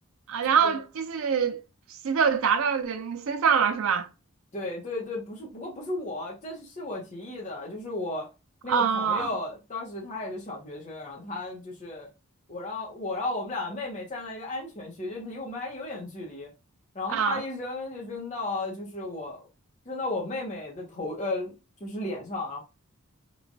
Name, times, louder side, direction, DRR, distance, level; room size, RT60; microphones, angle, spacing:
voice 1, 0.3-1.6 2.0-4.1 8.7-9.3 17.1-17.4, right 7 dB, 75° right, 0.4 m, -24 dB
voice 2, 4.5-8.3 8.6-12.1 12.5-16.5 16.9-19.4 19.9-21.5 21.8-22.6, left 2 dB, 35° left, 0.8 m, -34 dB
3.0 x 2.2 x 2.6 m
head